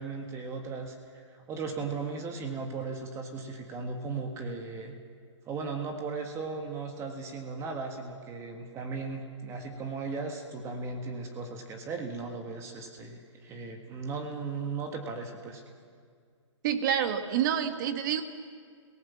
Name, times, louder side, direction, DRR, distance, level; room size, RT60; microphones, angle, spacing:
voice 1, 0.0-5.0 5.5-15.6, right 4 dB, 15° right, 4 dB, 1.7 m, -37 dB
voice 2, 16.6-18.2, right 9 dB, 40° right, 8 dB, 1.6 m, -28 dB
28.0 x 18.0 x 7.4 m, 2.1 s
hypercardioid pair, 145°, 16 cm